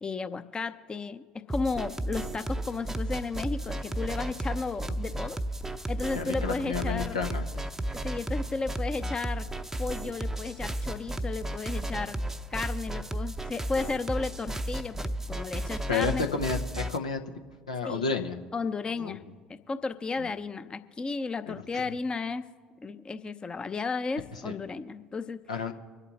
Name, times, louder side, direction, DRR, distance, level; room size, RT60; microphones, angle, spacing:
voice 1, 0.0-5.4 5.9-7.2 7.9-9.5 9.8-12.2 12.5-16.3 17.9-18.1 18.5-19.2 19.7-22.4 22.8-25.4, left 4 dB, 25° left, 10 dB, 0.7 m, -33 dB
sound 1, 1.5-17.0, right 1 dB, 10° right, 0.7 m, -34 dB
voice 2, 6.1-7.4 15.9-17.2 17.7-18.4 19.0-19.2 20.2-20.3 21.5-21.8 24.3-24.5 25.5-25.7, left 5 dB, 85° left, 5 dB, 0.9 m, -31 dB
24.5 x 8.2 x 4.2 m, 1.5 s
figure-of-eight pair, 65°, 4 cm